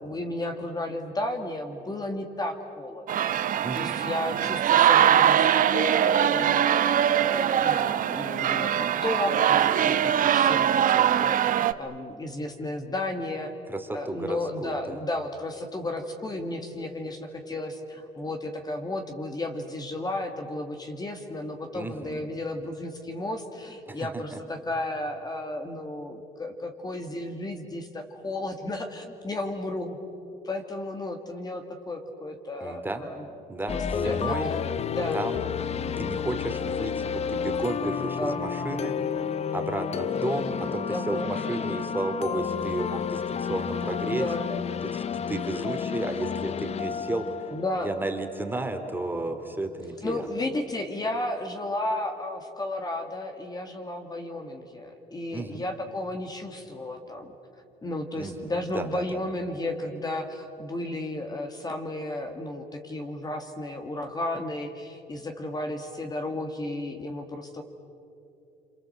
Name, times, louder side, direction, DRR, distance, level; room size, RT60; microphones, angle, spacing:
voice 1, 0.0-13.5 13.9-30.0 30.4-33.2 33.7-34.6 34.9-35.2 38.2-38.4 40.9-41.4 44.1-44.5 47.5-48.0 50.0-57.3 57.8-67.6, left 1 dB, 25° left, 4 dB, 2.1 m, -33 dB
sound 1, 3.1-11.7, right 10 dB, 55° right, 1.0 m, -22 dB
voice 2, 3.6-3.9 13.7-15.0 21.7-22.2 23.9-24.4 32.6-33.1 33.5-34.5 35.1-35.4 35.7-39.0 39.5-44.3 44.8-47.5 47.8-50.3 55.3-55.6 58.1-59.2, right 2 dB, 10° right, 5 dB, 2.7 m, -33 dB
sound 2, 33.7-48.5, left 7 dB, 40° left, 0.7 m, -31 dB
27.5 x 26.5 x 7.9 m, 2.8 s
cardioid pair, 110°, 17 cm